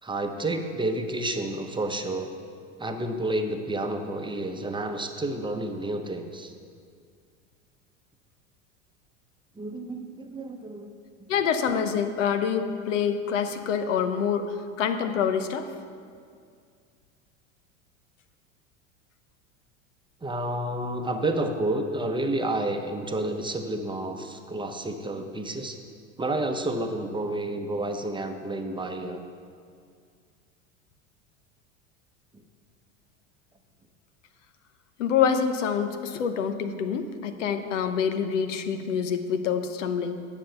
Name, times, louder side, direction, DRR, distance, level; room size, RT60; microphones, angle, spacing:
voice 1, 0.0-2.3 2.8-6.5 9.6-10.9 20.2-25.8 26.2-29.2, right 1 dB, 10° right, 5 dB, 0.9 m, -30 dB
voice 2, 11.3-15.7 35.0-40.2, left 7 dB, 70° left, 9 dB, 0.9 m, -26 dB
10.0 x 7.2 x 6.9 m, 2.2 s
hypercardioid pair, 80°, 38 cm